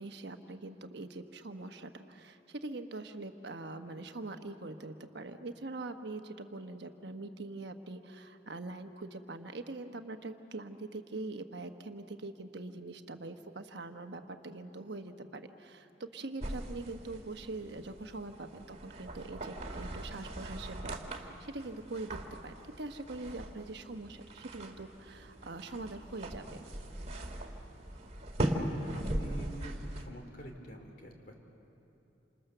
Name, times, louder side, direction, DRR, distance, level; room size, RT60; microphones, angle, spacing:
voice 1, 0.0-22.2 22.4-26.4, right 2 dB, 65° right, 6 dB, 1.2 m, -43 dB
sound 1, 16.4-30.1, right 1 dB, 35° right, 2.1 m, -40 dB
voice 2, 28.4-29.7 30.0-31.3, right 1 dB, 50° left, 3 dB, 3.3 m, -47 dB
28.0 x 27.0 x 6.8 m, 2.9 s
head